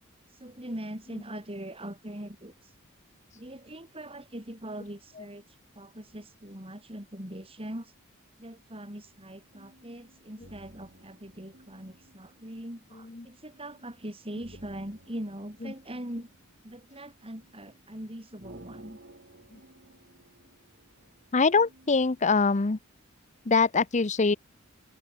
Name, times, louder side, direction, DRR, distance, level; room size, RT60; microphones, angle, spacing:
voice 1, 0.3-2.7 3.3-5.5 5.7-7.9 8.4-16.3 16.6-19.0, right 1 dB, 25° right, 6.9 m, -41 dB
sound 1, 9.1-22.3, right 1 dB, 55° right, 5.8 m, -56 dB
voice 2, 12.9-13.3 15.6-15.7 19.5-19.6 21.3-22.8 23.4-24.4, left 4 dB, 35° left, 0.7 m, -24 dB
head